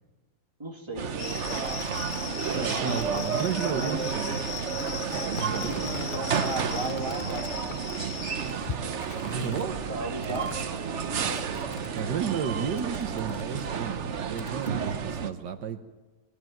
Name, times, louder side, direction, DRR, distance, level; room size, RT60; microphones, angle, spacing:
voice 1, 0.6-1.1 1.5-1.9 2.2-3.3 3.7-4.4 5.5-8.0 9.9-10.5 10.8-11.4, right 2 dB, 15° right, 0 dB, 2.9 m, -37 dB
sound 1, 0.9-12.4 12.8-14.9, left 6 dB, 50° left, 0.5 m, -44 dB
sound 2, 1.0-15.3, right 6 dB, 50° right, 1.1 m, -31 dB
sound 3, 1.2-8.5, left 6 dB, 80° left, 2.2 m, -39 dB
voice 2, 2.5-4.4 5.1-5.9 9.2-9.8 11.1-11.5 11.9-15.8, right 7 dB, 80° right, 7 dB, 1.7 m, -33 dB
22.5 x 16.5 x 9.2 m, 1.2 s
omnidirectional pair, 1.8 m